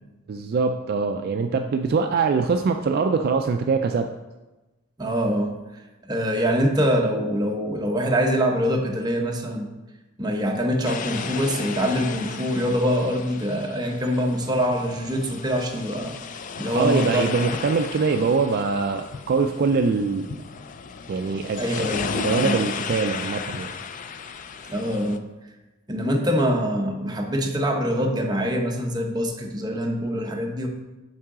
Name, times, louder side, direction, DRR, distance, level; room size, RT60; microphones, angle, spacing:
voice 1, 0.3-4.1 16.7-20.4 21.1-23.7, right 4 dB, 50° right, 6 dB, 0.3 m, -23 dB
voice 2, 5.0-5.5 6.0-9.7 10.2-16.2 16.6-17.2 21.6-22.6 24.7-25.2 25.9-30.7, equal, 20° right, 1 dB, 0.8 m, -24 dB
sound 1, 10.8-25.2, left 5 dB, 40° left, 0.3 m, -34 dB
7.4 x 4.7 x 3.7 m, 1.1 s
head